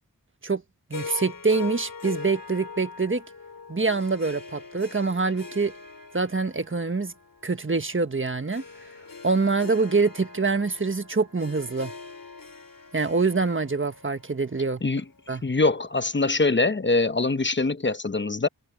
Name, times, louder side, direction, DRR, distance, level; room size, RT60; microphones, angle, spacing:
Harp, 0.9-15.3, left 4 dB, 65° left, 2.6 m, -42 dB
voice 1, 0.9-3.2 3.7-5.7 6.1-7.1 7.4-8.6 9.2-11.9 12.9-14.8 15.3-15.4, right 4 dB, 35° right, 1.4 m, -25 dB
voice 2, 15.4-18.5, left 3 dB, 30° left, 0.9 m, -23 dB
wide cardioid pair, 65°, 36 cm